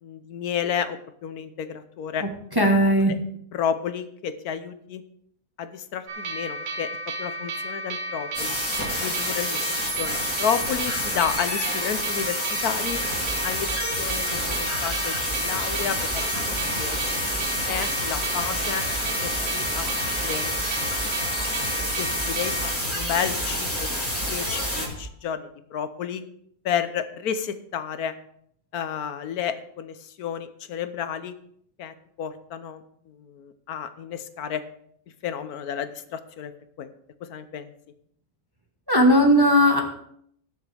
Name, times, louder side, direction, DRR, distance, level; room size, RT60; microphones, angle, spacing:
voice 1, 0.0-2.3 2.6-2.7 3.1-3.2 3.5-5.0 5.6-6.9 7.2-8.6 9.0-17.2 17.7-18.8 19.2-20.5 21.1-21.2 21.4-21.7 21.9-22.5 22.9-23.9 24.3-26.2 26.6-28.2 28.7-31.4 31.8-34.6 35.2-36.5 36.8-36.9 37.2-37.7, left 8 dB, 75° left, 11 dB, 1.3 m, -31 dB
voice 2, 2.6-3.1 38.9-39.8, equal, 15° right, 1 dB, 1.3 m, -17 dB
sound 1, 6.1-22.8, right 2 dB, 90° right, 1.8 m, -33 dB
sound 2, 8.3-24.9, equal, 10° left, 2.8 m, -28 dB
Singing, 12.8-25.0, right 1 dB, 35° right, 3.1 m, -38 dB
18.5 x 7.2 x 3.4 m, 0.67 s
omnidirectional pair, 1.6 m